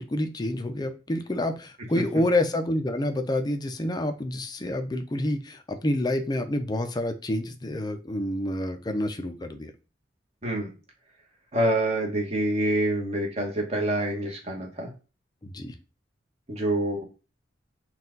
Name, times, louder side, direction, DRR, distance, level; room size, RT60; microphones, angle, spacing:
voice 1, 0.0-9.7 15.4-15.8, left 1 dB, 20° left, 7 dB, 0.5 m, -28 dB
voice 2, 11.5-14.9 16.5-17.1, right 1 dB, 35° right, 0 dB, 1.2 m, -26 dB
4.3 x 2.4 x 3.8 m, 0.32 s
head